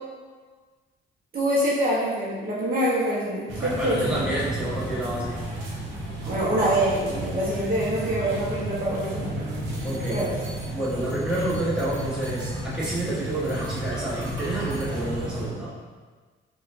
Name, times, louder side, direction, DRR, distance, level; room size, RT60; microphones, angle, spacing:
voice 1, 1.3-4.3 6.3-9.5 10.1-10.3, right 1 dB, 45° right, -6 dB, 0.9 m, -25 dB
sound 1, 3.5-15.5, right 1 dB, 90° right, 0.8 m, -32 dB
voice 2, 3.6-5.4 9.8-10.2 10.7-15.7, right 1 dB, 5° right, -9 dB, 1.2 m, -29 dB
4.9 x 2.4 x 2.5 m, 1.4 s
cardioid pair, 90°, 20 cm